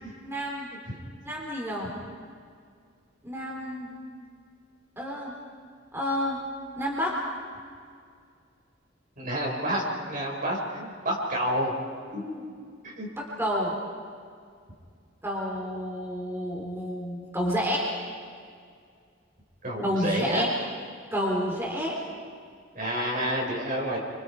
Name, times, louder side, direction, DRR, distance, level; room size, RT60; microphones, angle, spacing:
voice 1, 0.2-0.7 1.2-1.9 3.2-4.0 5.0-5.3 5.9-6.4 6.8-7.2 13.2-13.7 15.2-17.9 19.8-20.5 21.1-22.0, equal, 15° right, -3 dB, 4.0 m, -29 dB
voice 2, 9.2-11.7 12.1-12.5 12.8-13.1 19.6-20.5 22.8-24.0, equal, 45° right, -2 dB, 5.7 m, -29 dB
29.5 x 26.0 x 5.0 m, 2.2 s
head